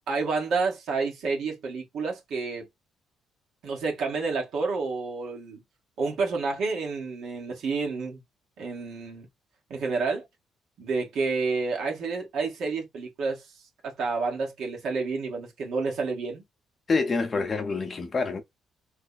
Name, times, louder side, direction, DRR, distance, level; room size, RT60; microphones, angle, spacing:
voice 1, 0.1-2.7 3.6-5.6 6.0-8.2 8.6-9.3 9.7-10.2 10.8-13.5 13.8-16.4, right 4 dB, 60° right, 1.4 m, -29 dB
voice 2, 16.9-18.4, left 4 dB, 30° left, 0.7 m, -26 dB
3.2 x 2.1 x 3.9 m
cardioid pair, 150°, 0 cm